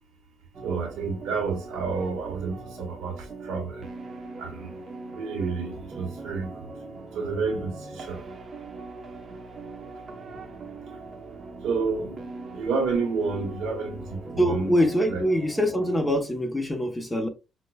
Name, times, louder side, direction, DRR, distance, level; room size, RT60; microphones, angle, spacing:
sound 1, 0.5-16.1, right 3 dB, 45° right, 0.8 m, -41 dB
voice 1, 0.6-3.1 3.5-3.8 4.4-4.6 5.2-6.5 7.2-8.2 11.6-12.1 12.5-14.0 14.3-14.8 15.1-15.2, right 4 dB, 90° right, 0.9 m, -29 dB
voice 2, 14.4-17.3, equal, 10° left, 0.9 m, -24 dB
4.9 x 2.1 x 2.2 m
cardioid pair, 90°, 0 cm